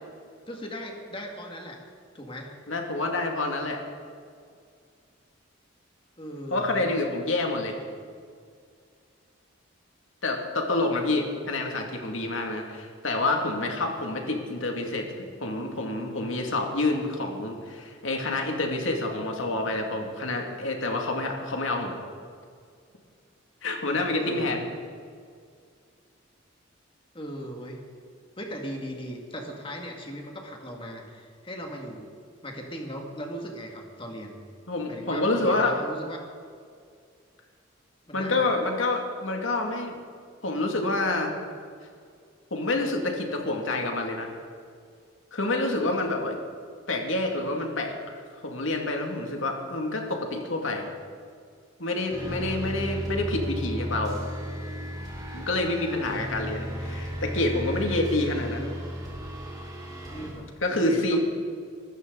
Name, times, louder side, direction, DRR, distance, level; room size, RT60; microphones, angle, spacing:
voice 1, 0.5-1.8 2.1-2.5 6.2-6.9 24.2-24.6 27.1-27.8 28.4-32.1 32.4-34.4 34.9-36.2 38.1-38.5 52.1-52.5 55.8-56.2 60.1-61.2, equal, 25° left, 1 dB, 2.2 m, -38 dB
voice 2, 2.7-3.8 6.5-7.8 10.2-21.9 23.6-24.6 34.7-35.9 38.1-40.0 40.4-41.3 42.5-44.3 45.3-46.4 46.9-48.2 48.4-50.8 51.8-54.2 55.3-58.7 60.6-61.2, left 2 dB, 75° left, 2 dB, 2.4 m, -28 dB
sound 1, 52.1-60.3, equal, 20° right, 4.0 m, -34 dB
24.0 x 13.5 x 4.1 m, 2.1 s
head